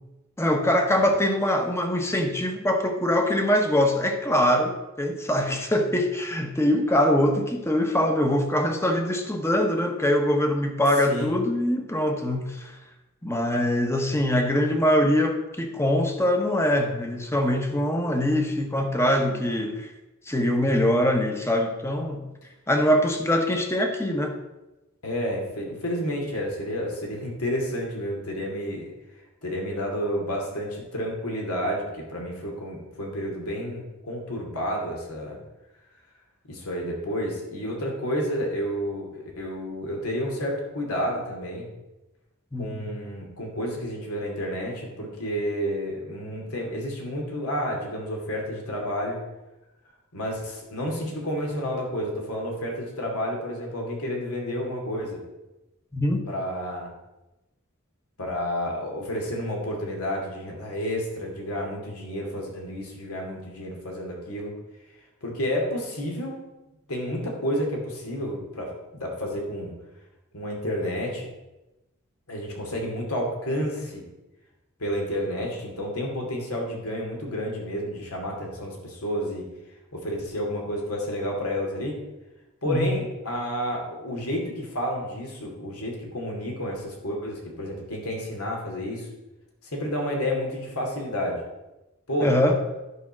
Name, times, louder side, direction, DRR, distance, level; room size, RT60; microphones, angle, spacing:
voice 1, 0.4-12.8 13.2-19.9 20.3-22.2 22.7-24.4 42.5-42.9 55.9-56.2 82.7-82.9 92.2-92.6, left 1 dB, 10° left, 4 dB, 1.0 m, -23 dB
voice 2, 25.0-28.8 29.4-35.4 36.5-41.7 42.6-49.2 50.1-55.2 56.3-56.9 58.2-64.5 65.2-66.4 66.9-69.7 70.3-71.3 72.3-74.1 74.8-79.4 79.9-82.0 82.6-89.1 89.6-91.4 92.1-92.3, equal, 85° left, 0 dB, 2.6 m, -30 dB
11.0 x 5.0 x 6.1 m, 1.0 s
head